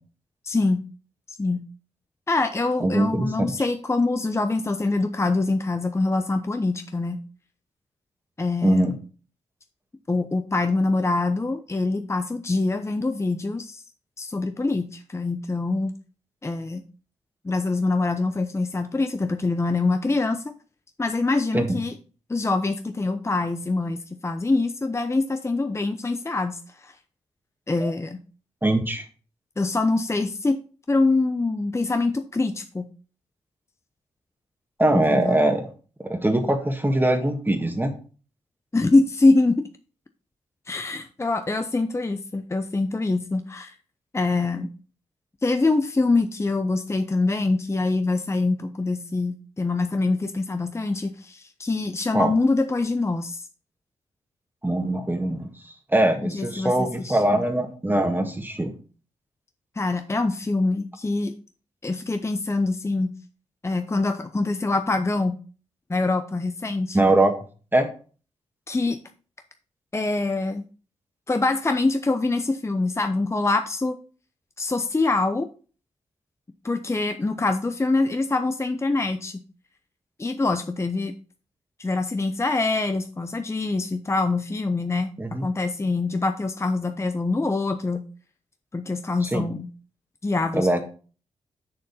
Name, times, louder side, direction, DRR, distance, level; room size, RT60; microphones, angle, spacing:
voice 1, 0.4-0.8 1.4-1.6 2.3-7.2 8.4-8.9 10.1-13.8 14.2-15.9 16.4-16.8 17.4-20.5 21.0-22.0 22.3-26.9 27.7-28.2 29.6-30.6 30.9-32.9 34.9-35.4 38.7-39.7 40.7-43.7 44.1-44.7 45.4-53.5 56.2-57.4 59.8-61.3 61.8-63.1 63.6-65.4 65.9-67.0 68.7-69.0 69.9-70.6 71.3-74.0 74.6-75.5 76.6-79.4 80.2-81.1 81.8-85.1 85.4-88.0 88.7-89.7 90.2-90.8, left 3 dB, 25° left, 8 dB, 0.7 m, -24 dB
voice 2, 2.8-3.5 8.6-9.0 21.5-21.8 27.8-27.9 28.6-29.0 34.8-35.7 36.0-37.9 52.1-52.3 54.6-58.7 66.9-67.3 67.7-67.9 85.2-85.4 89.2-89.4 90.5-90.8, right 1 dB, 15° right, 4 dB, 1.6 m, -22 dB
6.8 x 6.4 x 4.1 m, 0.38 s
cardioid pair, 55°, 12 cm